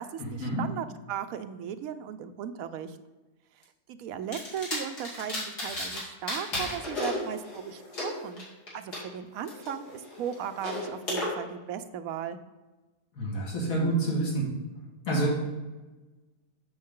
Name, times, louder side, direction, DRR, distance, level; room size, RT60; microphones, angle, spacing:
voice 1, 0.0-3.0 3.9-8.5 8.7-12.4, right 8 dB, 70° right, 9 dB, 0.9 m, -37 dB
sound 1, 4.3-6.0 6.3-9.0 9.5-11.3, left 1 dB, 80° left, 2.7 m, -34 dB
voice 2, 13.2-14.4 15.1-15.3, right 2 dB, 60° left, -5 dB, 2.5 m, -27 dB
7.8 x 6.3 x 3.7 m, 1.2 s
omnidirectional pair, 1.7 m